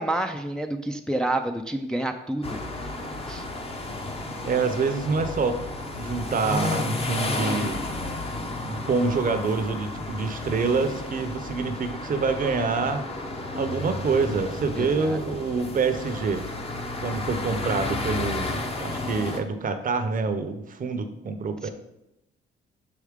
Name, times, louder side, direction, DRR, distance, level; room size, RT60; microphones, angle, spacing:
voice 1, 0.0-2.6 3.3-3.4 14.8-15.2 21.6-21.7, right 1 dB, 5° left, 4 dB, 0.4 m, -29 dB
sound 1, 2.4-19.4, left 2 dB, 30° left, 0.8 m, -32 dB
voice 2, 4.4-5.6 6.0-7.8 8.6-13.0 13.5-16.4 17.0-21.7, right 4 dB, 45° right, 8 dB, 0.7 m, -26 dB
6.3 x 4.8 x 3.6 m, 0.88 s
cardioid pair, 90°, 20 cm